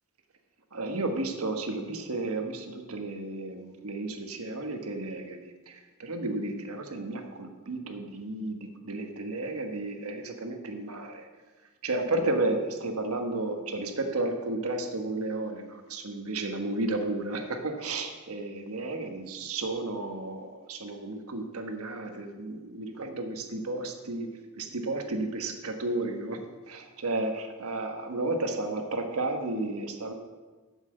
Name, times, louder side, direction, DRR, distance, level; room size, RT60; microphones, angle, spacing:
voice 1, 0.7-11.3 11.8-24.3 24.6-26.4 26.7-30.1, right 2 dB, 85° right, 5 dB, 1.3 m, -33 dB
7.8 x 7.4 x 7.7 m, 1.3 s
head